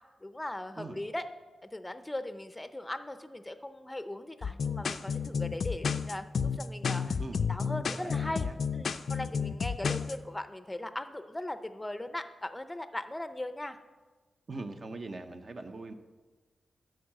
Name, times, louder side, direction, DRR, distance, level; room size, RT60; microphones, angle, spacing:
voice 1, 0.2-1.3 1.6-7.2 7.5-8.5 8.7-13.8, left 1 dB, 10° left, 10 dB, 0.6 m, -39 dB
sound 1, 4.4-10.1, left 6 dB, 60° left, 0.4 m, -31 dB
voice 2, 8.0-8.6 14.5-15.9, right 3 dB, 40° right, 6 dB, 0.7 m, -41 dB
12.0 x 4.7 x 7.5 m, 1.3 s
wide cardioid pair, 130°, 0 cm